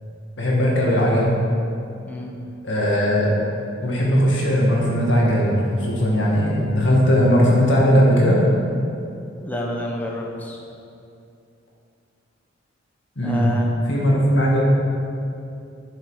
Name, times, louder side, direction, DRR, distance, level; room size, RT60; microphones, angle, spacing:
voice 1, 0.4-1.3 2.6-3.3 3.8-8.4 13.2-13.4 13.9-14.6, equal, 65° left, -3 dB, 2.0 m, -18 dB
voice 2, 2.0-2.3 9.4-10.6 13.2-13.7, left 1 dB, 10° left, -2 dB, 1.0 m, -29 dB
9.2 x 6.8 x 4.9 m, 2.5 s
head